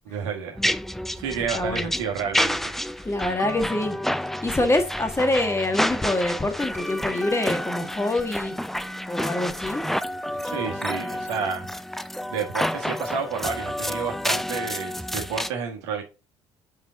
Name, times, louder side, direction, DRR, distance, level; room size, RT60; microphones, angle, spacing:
voice 1, 0.0-0.6 1.1-3.1 10.4-11.6 12.3-16.0, right 6 dB, 80° right, 1.5 m, -30 dB
sound 1, 0.6-15.5, equal, ahead, 0.5 m, -29 dB
voice 2, 1.5-1.9 3.0-4.0 4.4-8.5 9.1-9.8, left 2 dB, 20° left, 1.6 m, -25 dB
5.4 x 4.9 x 4.7 m
hypercardioid pair, 55°, 15 cm